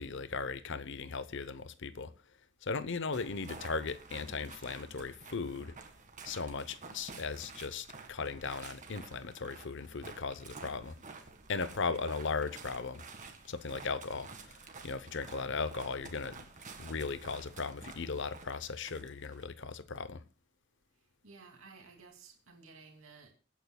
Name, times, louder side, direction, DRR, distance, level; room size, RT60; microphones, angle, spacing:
voice 1, 0.0-2.1 2.6-5.7 6.2-11.0 11.5-13.0 13.5-14.6 14.8-16.4 16.8-20.2, left 4 dB, 60° left, 0.8 m, -37 dB
sound 1, 3.1-19.5, right 4 dB, 40° right, 1.8 m, -51 dB
voice 2, 15.3-15.7 21.2-23.3, right 4 dB, 70° right, 2.6 m, -55 dB
27.5 x 9.2 x 2.3 m
head